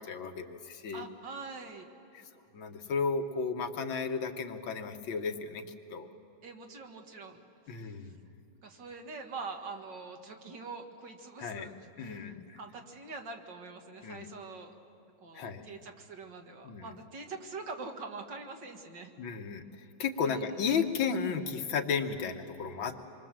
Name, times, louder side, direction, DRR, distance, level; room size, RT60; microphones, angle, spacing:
voice 1, 0.0-1.1 2.1-2.2 2.5-5.6 5.9-6.1 7.7-8.2 11.4-11.7 12.0-12.6 14.0-14.3 15.3-15.6 16.6-16.9 19.2-23.0, left 5 dB, 80° left, 5 dB, 2.1 m, -34 dB
voice 2, 0.9-1.9 6.4-7.9 8.6-14.7 15.2-19.1 20.2-20.6, right 4 dB, 65° right, 4 dB, 2.3 m, -44 dB
26.5 x 23.5 x 7.5 m, 2.8 s
omnidirectional pair, 2.1 m